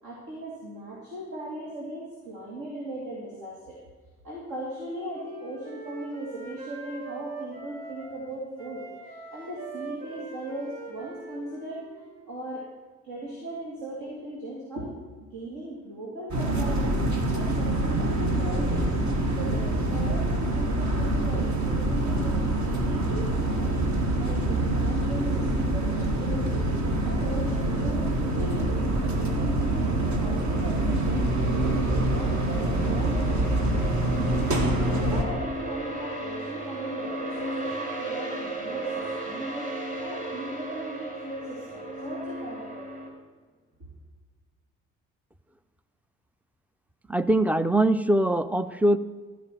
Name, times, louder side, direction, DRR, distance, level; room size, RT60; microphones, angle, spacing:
voice 1, 0.0-3.8 4.2-11.8 12.3-12.7 13.0-17.0 17.3-18.9 19.3-26.7 27.0-28.7 29.2-31.3 31.6-34.0 34.7-39.7 40.0-43.0, right 1 dB, 60° right, -3 dB, 2.4 m, -38 dB
Wind instrument woodwind instrument, 4.7-8.2 8.6-12.3, right 3 dB, 75° right, 2.2 m, -42 dB
sound 1, 16.3-35.2, right 1 dB, 45° right, 1.6 m, -25 dB
sound 2, 23.4-43.1, right 1 dB, 20° right, 2.5 m, -37 dB
voice 2, 47.1-49.0, right 1 dB, 5° right, 14 dB, 0.4 m, -22 dB
14.0 x 5.1 x 7.4 m, 1.4 s
figure-of-eight pair, 45°, 40 cm